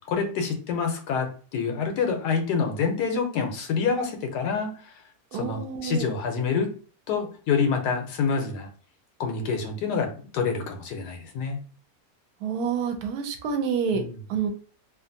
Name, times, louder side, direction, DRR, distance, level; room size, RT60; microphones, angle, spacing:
voice 1, 0.1-1.3 1.5-4.9 5.3-6.7 7.1-8.7 9.2-11.6 13.9-14.1, left 5 dB, 80° left, 4 dB, 1.2 m, -27 dB
voice 2, 5.3-6.1 12.4-14.0 14.3-14.5, right 6 dB, 75° right, 5 dB, 1.0 m, -28 dB
2.7 x 2.5 x 2.5 m, 0.40 s
omnidirectional pair, 1.7 m